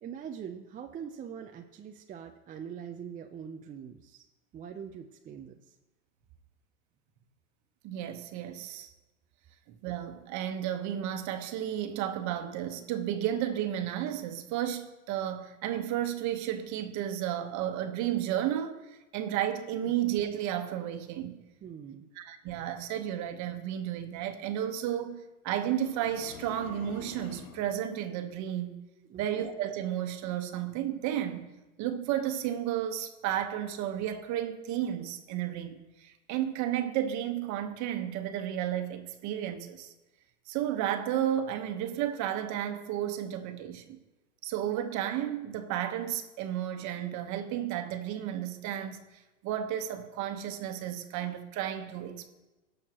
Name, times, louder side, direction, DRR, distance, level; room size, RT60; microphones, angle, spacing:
voice 1, 0.0-4.3 4.5-5.7 19.8-19.9 21.6-22.1 29.1-29.2, right 8 dB, 20° right, 0.5 m, -43 dB
voice 2, 7.8-8.9 9.7-18.8 19.1-21.4 22.2-28.8 29.2-31.5 31.8-39.9 40.5-44.0 44.4-49.0 49.4-52.3, right 11 dB, 45° right, 1.3 m, -32 dB
sound 1, 25.7-27.8, left 8 dB, 80° left, 1.0 m, -48 dB
18.0 x 6.5 x 3.0 m
hypercardioid pair, 115°, 40 cm